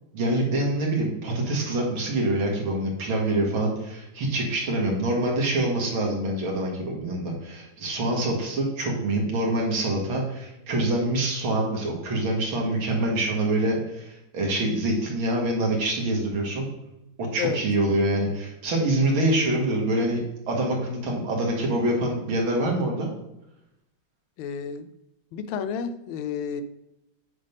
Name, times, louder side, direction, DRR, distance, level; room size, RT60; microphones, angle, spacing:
voice 1, 0.1-16.7 17.3-23.1, right 1 dB, 80° right, -1 dB, 2.4 m, -25 dB
voice 2, 24.4-24.9 25.3-26.6, left 7 dB, 90° left, 11 dB, 1.4 m, -30 dB
7.6 x 3.5 x 5.3 m, 0.86 s
omnidirectional pair, 2.2 m